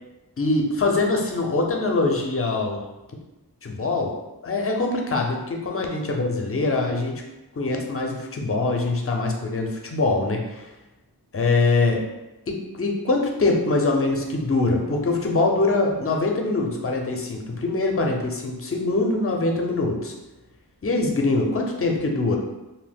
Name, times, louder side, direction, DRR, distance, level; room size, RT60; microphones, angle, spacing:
voice 1, 0.4-2.8 3.6-4.1 4.4-7.2 7.5-10.7 11.3-12.0 12.5-20.1 20.8-22.4, left 3 dB, 35° left, 1 dB, 0.5 m, -23 dB
2.7 x 2.0 x 3.4 m, 1.0 s
wide cardioid pair, 75°, 39 cm